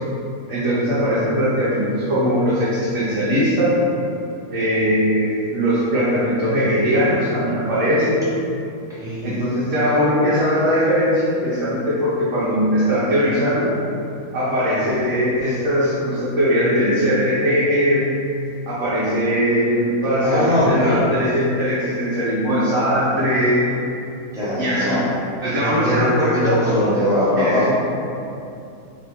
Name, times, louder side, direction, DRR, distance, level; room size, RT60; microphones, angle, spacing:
voice 1, 0.5-3.8 4.5-8.2 9.2-13.7 14.3-18.0 18.7-23.7 24.6-24.9 25.4-26.5 27.4-27.7, equal, 60° right, -10 dB, 1.1 m, -20 dB
voice 2, 9.0-9.4 20.2-21.0 24.3-25.1 25.6-27.7, left 1 dB, ahead, -12 dB, 1.2 m, -21 dB
3.4 x 3.0 x 4.3 m, 2.6 s
omnidirectional pair, 1.5 m